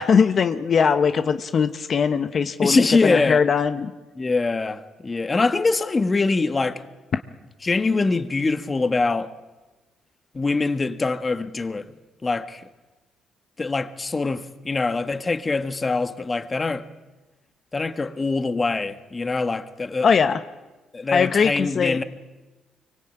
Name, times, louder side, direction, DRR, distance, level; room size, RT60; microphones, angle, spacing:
voice 1, 0.0-3.9 20.0-20.4 21.1-22.0, left 6 dB, 50° left, 1.1 m, -20 dB
voice 2, 2.6-3.5 4.1-6.8 7.6-9.3 10.3-12.0 12.2-12.7 13.6-16.9 17.7-20.1 20.9-22.0, left 3 dB, 25° left, 1.7 m, -23 dB
25.0 x 24.0 x 9.1 m
cardioid pair, 90°, 0 cm